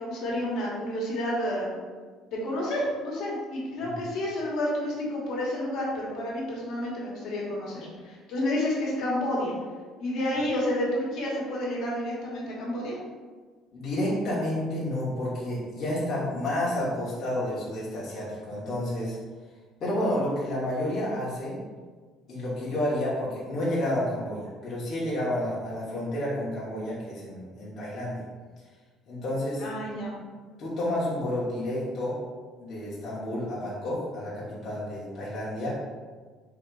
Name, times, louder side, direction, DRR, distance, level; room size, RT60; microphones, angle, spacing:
voice 1, 0.0-1.8 2.3-9.5 10.0-13.0 29.6-30.1, left 1 dB, 60° left, -4 dB, 1.2 m, -30 dB
voice 2, 13.7-19.2 19.8-21.6 22.3-28.2 29.1-29.6 30.6-32.1 32.6-35.7, left 1 dB, 35° left, -8 dB, 1.1 m, -30 dB
3.8 x 2.9 x 4.7 m, 1.5 s
cardioid pair, 175°, 0 cm